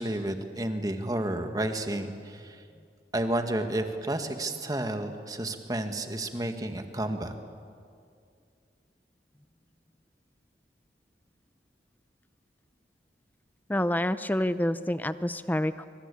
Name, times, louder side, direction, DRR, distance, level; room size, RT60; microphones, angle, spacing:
voice 1, 0.0-2.6 3.1-7.3, right 1 dB, 20° right, 6 dB, 1.8 m, -31 dB
voice 2, 13.7-15.8, left 1 dB, 10° left, 13 dB, 0.7 m, -28 dB
25.0 x 25.0 x 8.5 m, 2.3 s
head